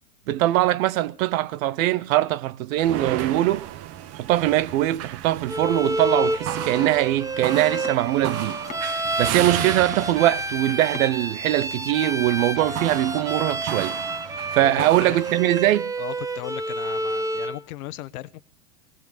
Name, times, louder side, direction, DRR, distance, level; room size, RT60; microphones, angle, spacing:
voice 1, 0.3-3.7 4.1-8.6 9.2-14.0 14.5-15.9, right 14 dB, 60° right, 0.8 m, -22 dB
sound 1, 2.8-15.7, right 12 dB, 35° right, 0.9 m, -34 dB
Bowed string instrument, 5.5-17.6, right 2 dB, 5° right, 1.0 m, -29 dB
Domestic sounds home sounds, 6.5-11.3 11.6-12.2, left 6 dB, 15° left, 1.8 m, -44 dB
voice 2, 14.6-15.2 16.0-18.4, left 16 dB, 70° left, 1.1 m, -36 dB
18.0 x 17.0 x 4.0 m
hypercardioid pair, 120°, 46 cm